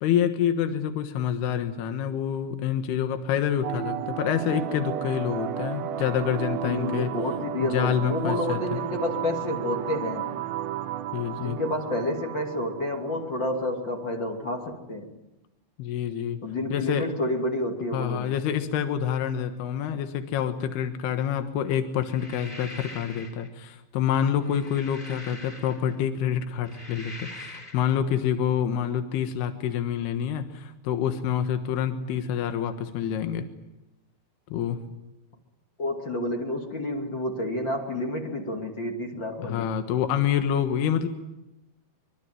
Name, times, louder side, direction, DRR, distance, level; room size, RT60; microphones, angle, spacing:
voice 1, 0.0-7.1 7.6-8.8 11.1-11.6 15.8-16.4 16.7-17.1 17.9-33.5 34.5-34.8 39.4-41.1, left 9 dB, 80° left, 8 dB, 3.4 m, -27 dB
sound 1, 3.6-14.6, right 11 dB, 70° right, 1.7 m, -34 dB
voice 2, 6.6-10.3 11.4-15.1 16.4-18.3 35.8-39.8, left 1 dB, 30° left, 1 dB, 2.9 m, -29 dB
sound 2, 22.0-23.5 24.3-26.0 26.5-27.9, left 1 dB, 10° left, 3.5 m, -43 dB
24.0 x 24.0 x 9.2 m, 0.92 s
omnidirectional pair, 4.6 m